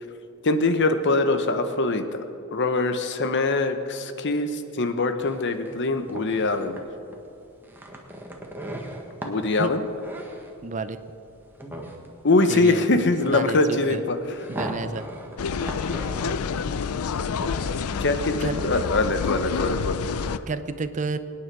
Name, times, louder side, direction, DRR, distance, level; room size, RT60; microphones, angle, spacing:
voice 1, 0.4-2.2 2.5-6.8 9.2-9.8 12.2-14.2 18.0-20.3, left 2 dB, 55° left, 8 dB, 1.0 m, -23 dB
sound 1, 5.2-19.9, right 1 dB, 10° right, 1.5 m, -39 dB
voice 2, 10.6-11.0 12.5-12.8 13.2-14.0 14.5-15.0 18.4-18.5 20.5-21.2, right 3 dB, 35° right, 12 dB, 0.5 m, -30 dB
sound 2, 15.4-20.4, left 5 dB, 80° left, 0.5 m, -28 dB
24.0 x 9.7 x 4.7 m, 2.7 s
head